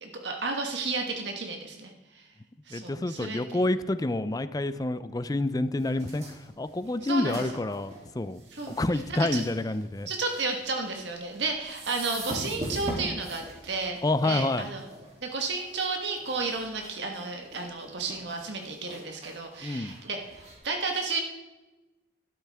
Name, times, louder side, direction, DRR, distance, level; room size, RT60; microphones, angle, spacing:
voice 1, 0.0-2.3 2.7-3.6 7.0-7.4 8.5-8.8 9.1-9.4 10.1-14.8 15.2-20.4 20.6-21.2, right 3 dB, 75° right, 3 dB, 1.4 m, -32 dB
voice 2, 2.7-6.2 6.6-8.4 8.7-10.1 14.0-14.7 19.6-19.9, left 2 dB, 20° left, 13 dB, 0.4 m, -28 dB
sound 1, 5.8-20.5, right 1 dB, 40° right, 2.9 m, -43 dB
12.5 x 12.0 x 3.5 m, 1.1 s
head